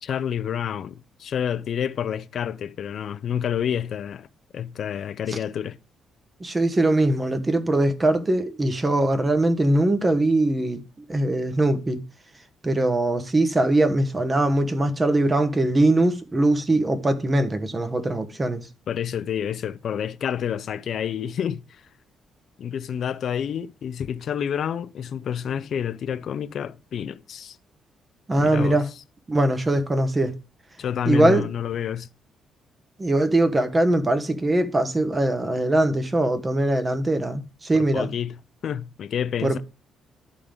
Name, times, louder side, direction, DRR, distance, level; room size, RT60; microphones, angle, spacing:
voice 1, 0.0-4.3 4.5-5.8 18.9-21.8 22.6-27.6 28.4-28.8 30.8-32.1 37.7-38.4 38.6-39.6, left 8 dB, 60° left, 0.4 m, -29 dB
voice 2, 6.4-10.8 11.1-12.0 12.6-18.7 28.3-28.9 29.3-30.3 31.1-31.5 33.0-38.1 39.4-39.6, right 1 dB, 25° right, 1.1 m, -21 dB
11.0 x 3.8 x 5.1 m
cardioid pair, 90°, 0 cm